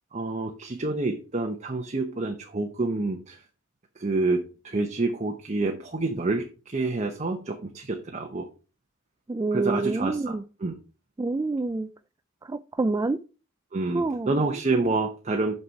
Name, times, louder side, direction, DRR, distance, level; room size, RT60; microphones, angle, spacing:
voice 1, 0.1-3.4 4.0-8.5 9.5-10.3 10.6-10.7 13.7-15.6, right 3 dB, 35° right, 4 dB, 0.8 m, -28 dB
voice 2, 9.3-10.4 11.2-11.9 12.5-13.2 13.9-14.3, right 3 dB, 20° right, 12 dB, 0.3 m, -27 dB
6.6 x 5.5 x 4.5 m, 0.34 s
head